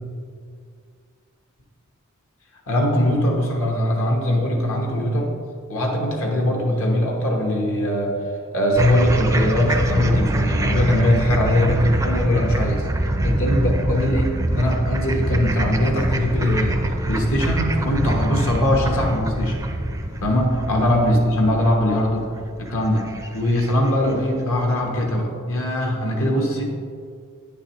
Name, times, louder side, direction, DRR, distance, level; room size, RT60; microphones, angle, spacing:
voice 1, 2.7-5.3 5.7-8.1 8.5-12.9 13.2-19.6 20.2-22.2 22.6-23.0 23.3-26.6, left 1 dB, 65° left, 0 dB, 1.1 m, -21 dB
sound 1, 8.8-24.1, right 1 dB, 15° right, 0.4 m, -24 dB
9.0 x 6.7 x 3.0 m, 2.2 s
head